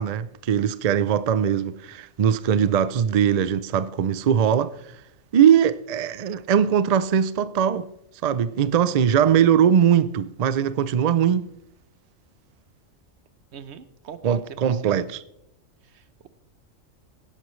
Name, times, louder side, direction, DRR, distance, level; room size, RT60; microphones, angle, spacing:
voice 1, 0.0-4.8 5.3-7.9 8.2-11.5 14.2-15.2, right 8 dB, 80° right, 0.3 m, -21 dB
voice 2, 13.5-15.0 15.9-16.3, right 7 dB, 60° right, 1.0 m, -40 dB
16.5 x 11.5 x 3.2 m
omnidirectional pair, 1.4 m